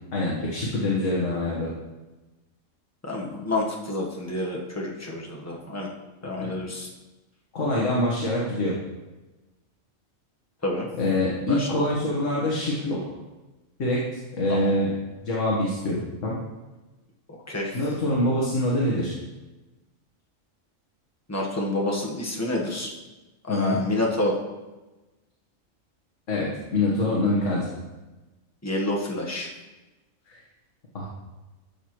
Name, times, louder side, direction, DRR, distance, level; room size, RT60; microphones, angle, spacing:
voice 1, 0.1-1.7 6.2-6.5 7.5-8.8 11.0-13.0 13.8-14.0 14.3-14.9 15.2-16.0 16.2-16.4 17.7-19.1 23.5-23.8 26.3-27.7 30.3-30.4 30.9-31.1, left 1 dB, 70° left, -4 dB, 1.8 m, -25 dB
voice 2, 3.0-5.9 6.2-6.9 10.6-10.9 11.5-11.8 14.5-14.7 17.3-17.8 21.3-22.9 23.5-24.4 28.6-29.5, left 2 dB, 15° left, -1 dB, 1.1 m, -28 dB
12.5 x 6.4 x 3.0 m, 1.1 s
omnidirectional pair, 1.4 m